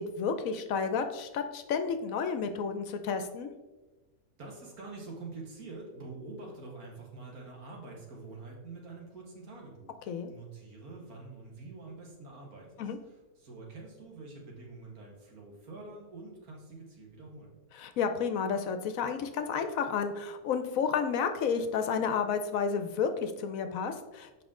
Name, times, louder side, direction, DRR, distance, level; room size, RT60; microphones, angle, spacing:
voice 1, 0.0-3.5 10.1-10.3 12.8-13.0 17.7-24.4, left 6 dB, 70° left, 8 dB, 1.0 m, -31 dB
voice 2, 4.4-10.0 10.2-17.5, right 3 dB, 75° right, -2 dB, 2.0 m, -46 dB
7.2 x 5.2 x 3.7 m, 1.2 s
omnidirectional pair, 1.6 m